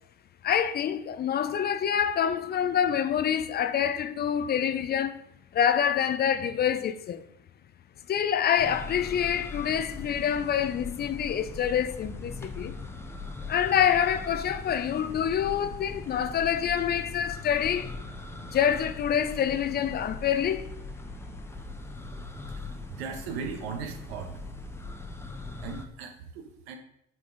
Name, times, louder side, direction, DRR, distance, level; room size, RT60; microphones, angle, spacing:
voice 1, 0.4-5.2 5.5-7.2 8.1-12.9 13.5-17.9 18.5-20.7, left 9 dB, 35° left, 0.5 m, -26 dB
sound 1, 8.6-25.9, left 3 dB, 10° left, 0.8 m, -40 dB
voice 2, 22.9-24.3 25.6-26.8, right 6 dB, 80° right, 1.3 m, -37 dB
8.5 x 4.2 x 3.9 m
supercardioid pair, 95°, 30 cm